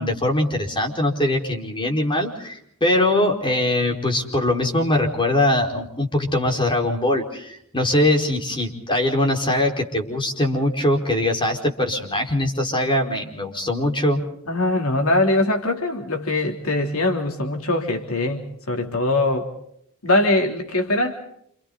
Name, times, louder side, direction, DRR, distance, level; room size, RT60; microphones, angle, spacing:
voice 1, 0.0-14.2, left 1 dB, 25° left, 2 dB, 4.8 m, -22 dB
voice 2, 14.5-19.5 20.0-21.2, left 2 dB, 75° left, 3 dB, 3.4 m, -22 dB
29.5 x 28.5 x 4.1 m, 0.70 s
head